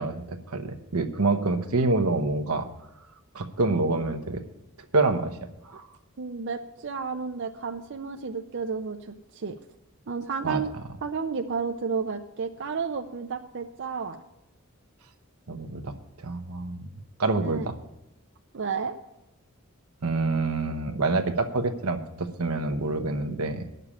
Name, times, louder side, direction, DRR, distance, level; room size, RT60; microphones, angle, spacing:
voice 1, 0.0-2.7 3.3-4.4 4.9-5.3 5.6-5.9 10.4-10.6 15.5-15.9 16.2-16.9 17.2-17.7 20.0-23.8, right 3 dB, 85° right, 7 dB, 1.0 m, -27 dB
voice 2, 6.2-9.0 9.3-9.6 10.1-10.7 11.0-14.2 17.4-17.7 18.5-19.0, right 5 dB, 55° right, 5 dB, 0.5 m, -31 dB
9.9 x 6.8 x 8.9 m, 0.91 s
head